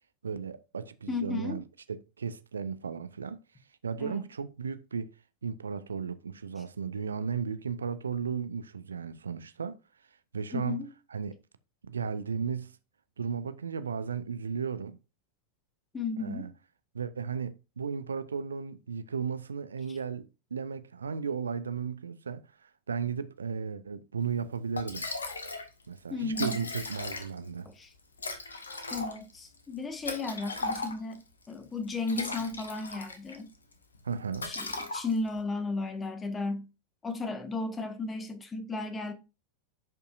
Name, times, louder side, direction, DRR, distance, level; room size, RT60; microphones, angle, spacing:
voice 1, 0.2-3.4 3.8-5.1 5.4-9.8 10.3-10.8 11.1-11.4 11.8-12.7 13.2-15.0 16.2-16.5 16.9-20.3 20.5-25.1 25.9-27.7 34.0-34.5, right 6 dB, 70° right, 0.6 m, -35 dB
voice 2, 1.1-1.6 4.0-4.2 10.5-10.9 15.9-16.5 19.9-20.0 26.1-26.6 27.6-27.9 28.9-31.2 31.5-33.5 34.4-36.7 37.0-39.1, left 3 dB, 15° left, 1.3 m, -34 dB
Liquid, 24.4-24.5 24.8-25.7 26.0-26.1 26.2-27.5 28.2-31.2 31.9-33.4 33.7-34.0 34.3-35.4, left 3 dB, 75° left, 1.2 m, -37 dB
10.5 x 5.4 x 2.5 m
figure-of-eight pair, 90°, 0 cm